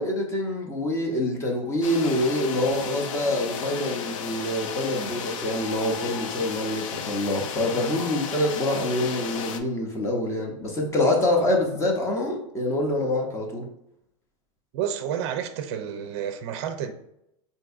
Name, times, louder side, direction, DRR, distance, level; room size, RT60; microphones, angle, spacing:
voice 1, 0.0-13.7, left 1 dB, 15° left, 0.6 m, -26 dB
sound 1, 1.8-9.6, left 6 dB, 75° left, 0.4 m, -34 dB
voice 2, 14.7-16.9, right 9 dB, 55° right, 0.4 m, -30 dB
3.9 x 2.7 x 2.4 m
supercardioid pair, 135°, 17 cm